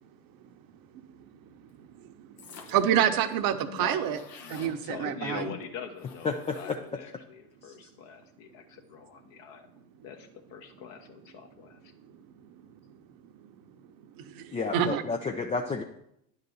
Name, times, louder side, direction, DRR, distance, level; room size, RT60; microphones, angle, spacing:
voice 1, 2.2-4.2 4.5-5.5 12.5-12.6 14.2-15.0, right 9 dB, 45° right, 8 dB, 0.9 m, -28 dB
sound 1, 2.4-3.0 3.3-3.4 3.6-4.8 6.0-7.0, left 5 dB, 75° left, 1.5 m, -49 dB
voice 2, 3.6-9.7 10.0-11.9, left 6 dB, 60° left, 4 dB, 1.4 m, -43 dB
voice 3, 6.2-6.8 7.7-7.8 14.5-15.8, left 4 dB, 15° left, 4 dB, 0.4 m, -31 dB
9.6 x 4.0 x 7.0 m, 0.77 s
hypercardioid pair, 85°, 48 cm